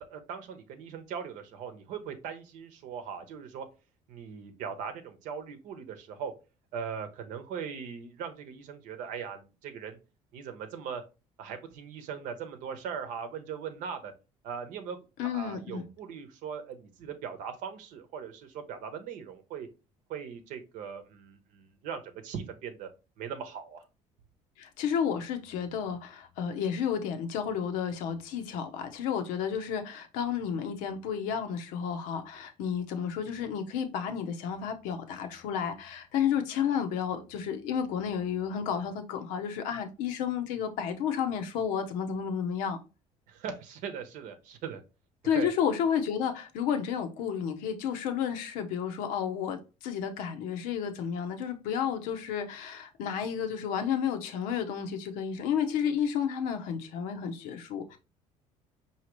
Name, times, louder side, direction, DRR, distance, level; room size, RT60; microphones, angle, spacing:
voice 1, 0.1-3.7 4.1-6.3 6.7-10.0 10.3-11.0 11.4-14.1 14.4-15.0 15.2-19.7 20.1-22.9 23.2-23.8 43.3-44.8 45.3-45.5, right 7 dB, 75° right, 0.8 m, -39 dB
voice 2, 15.2-15.9 24.6-42.8 45.2-58.0, left 8 dB, 85° left, 0.7 m, -31 dB
4.8 x 2.8 x 3.0 m
cardioid pair, 110°, 13 cm